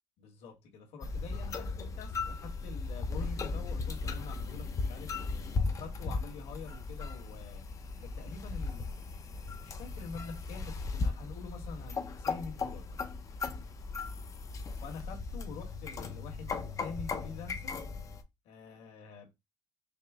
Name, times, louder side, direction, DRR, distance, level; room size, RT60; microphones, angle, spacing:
voice 1, 0.2-1.6 1.9-5.3 5.7-7.6 8.0-9.1 9.4-13.0 14.8-17.8 18.4-19.3, left 4 dB, 65° left, 1.5 m, -46 dB
sound 1, 1.0-18.2, left 4 dB, 30° left, 0.6 m, -37 dB
5.0 x 2.1 x 3.5 m
cardioid pair, 140°, 11 cm